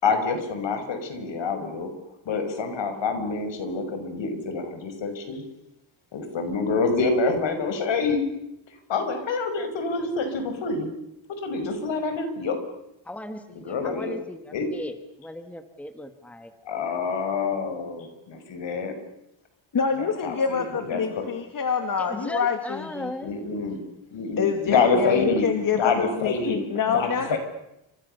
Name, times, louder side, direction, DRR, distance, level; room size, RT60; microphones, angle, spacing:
voice 1, 0.0-1.9 2.3-5.4 6.1-8.3 8.9-10.9 11.3-12.6 13.6-14.2 14.5-14.7 16.7-18.9 20.0-21.2 23.2-23.8 24.1-25.5 25.7-26.6 26.9-27.4, left 4 dB, 65° left, 7 dB, 5.6 m, -27 dB
voice 2, 13.0-16.5 22.0-23.3, left 1 dB, 5° left, 8 dB, 1.5 m, -37 dB
voice 3, 19.7-23.1 24.4-27.4, left 6 dB, 45° left, 6 dB, 2.2 m, -26 dB
29.5 x 26.5 x 6.7 m, 0.85 s
wide cardioid pair, 160°, 47 cm